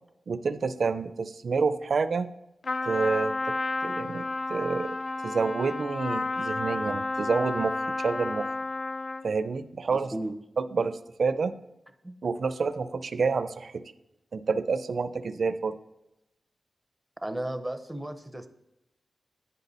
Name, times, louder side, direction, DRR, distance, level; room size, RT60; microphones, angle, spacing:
voice 1, 0.3-2.3 2.8-3.3 3.8-5.0 5.2-8.5 9.2-10.1 10.6-11.5 12.2-13.8 14.3-15.7, right 4 dB, 55° right, 12 dB, 0.4 m, -28 dB
Trumpet, 2.6-9.3, left 3 dB, 60° left, 0.4 m, -31 dB
voice 2, 9.9-10.3 12.0-12.1 17.2-18.5, right 1 dB, 5° right, 8 dB, 0.6 m, -34 dB
8.3 x 5.5 x 4.0 m, 0.92 s
wide cardioid pair, 135°, 0 cm